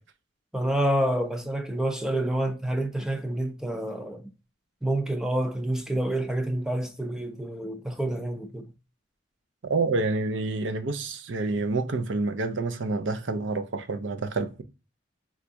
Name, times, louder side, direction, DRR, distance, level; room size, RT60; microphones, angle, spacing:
voice 1, 0.5-4.3 4.8-8.7, right 1 dB, 5° right, 0.5 m, -28 dB
voice 2, 9.6-14.6, right 3 dB, 70° right, 0.6 m, -28 dB
4.4 x 2.4 x 2.5 m
head